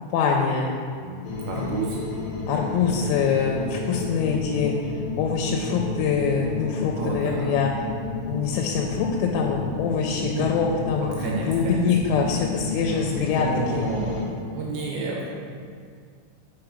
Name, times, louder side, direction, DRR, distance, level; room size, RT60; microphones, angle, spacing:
voice 1, 0.1-0.7 1.5-1.8 2.5-4.7 5.2-7.7 8.3-13.5 13.7-13.9, left 6 dB, 90° left, 0 dB, 3.3 m, -24 dB
voice 2, 1.0-1.9 6.9-7.6 10.2-10.5 11.2-11.8 12.9-14.2 14.5-15.3, right 3 dB, 80° right, -3 dB, 2.6 m, -31 dB
sound 1, 1.2-14.3, left 3 dB, 70° left, 2.9 m, -32 dB
6.0 x 5.7 x 5.0 m, 2.1 s
omnidirectional pair, 5.9 m